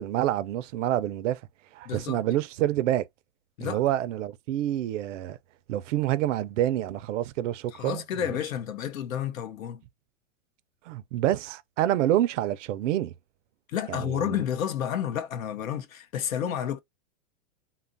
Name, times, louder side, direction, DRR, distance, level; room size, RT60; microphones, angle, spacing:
voice 1, 0.0-1.4 1.7-3.1 3.6-5.4 5.7-8.0 10.9-13.1 13.9-14.3, right 13 dB, 65° right, 0.5 m, -27 dB
voice 2, 1.8-2.2 3.6-3.8 7.7-9.8 13.7-16.8, left 9 dB, 85° left, 0.7 m, -30 dB
2.8 x 2.4 x 2.5 m
hypercardioid pair, 130°, 40 cm